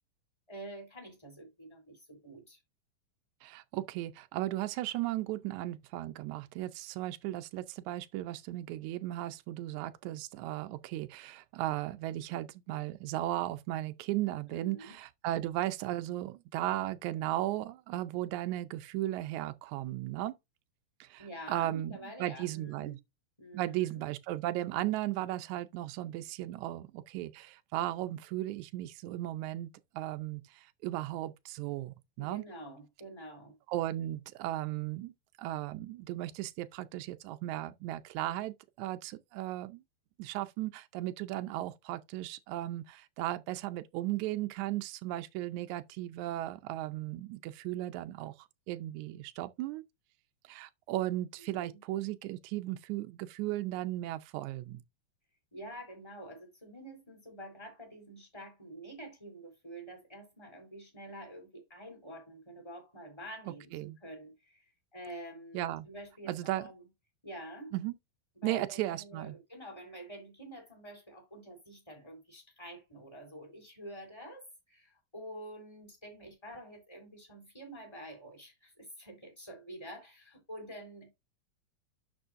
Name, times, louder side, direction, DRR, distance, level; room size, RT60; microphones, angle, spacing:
voice 1, 0.5-2.6 14.5-15.0 21.2-23.0 23.4-24.0 32.2-33.5 51.4-51.8 55.5-63.7 64.0-66.9 67.2-67.7 68.4-81.1, right 1 dB, 5° left, 3.6 m, -48 dB
voice 2, 3.4-20.3 21.0-23.0 23.5-32.4 33.7-35.1 35.4-39.8 40.2-49.8 50.5-54.8 63.7-64.0 65.5-65.9 66.3-66.7 67.7-68.0 68.4-69.4, right 15 dB, 90° right, 1.6 m, -36 dB
11.0 x 6.1 x 2.6 m
omnidirectional pair, 4.1 m